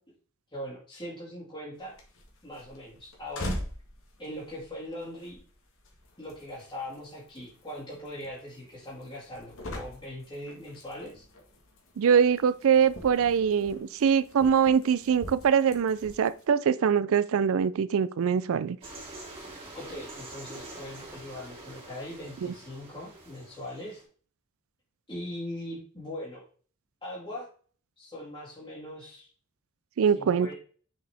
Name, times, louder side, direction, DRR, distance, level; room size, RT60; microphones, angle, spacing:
voice 1, 0.5-2.0 2.4-3.6 4.2-5.4 6.2-11.3 19.7-24.0 25.1-26.4 27.0-27.5 28.0-29.3 30.1-30.5, left 1 dB, 20° left, 2.0 m, -40 dB
sound 1, 1.7-16.4, left 1 dB, 65° left, 1.4 m, -44 dB
voice 2, 12.0-18.8 22.4-22.5 30.0-30.5, right 7 dB, 65° right, 0.4 m, -23 dB
sound 2, 18.8-24.0, right 2 dB, 25° right, 3.0 m, -45 dB
6.4 x 4.8 x 3.4 m
head